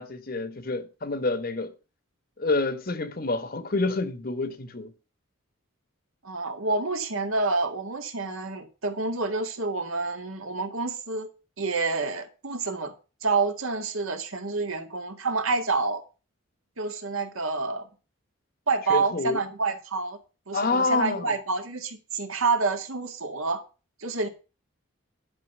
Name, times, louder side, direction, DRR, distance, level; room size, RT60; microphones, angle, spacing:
voice 1, 0.0-1.7 2.4-4.9 18.9-19.4 20.5-21.3, left 3 dB, 45° left, 1.0 m, -28 dB
voice 2, 6.2-11.3 11.6-12.9 13.2-16.0 16.8-17.9 18.7-20.2 20.5-23.6 24.0-24.3, right 3 dB, 80° right, 1.9 m, -28 dB
11.5 x 5.8 x 6.7 m
head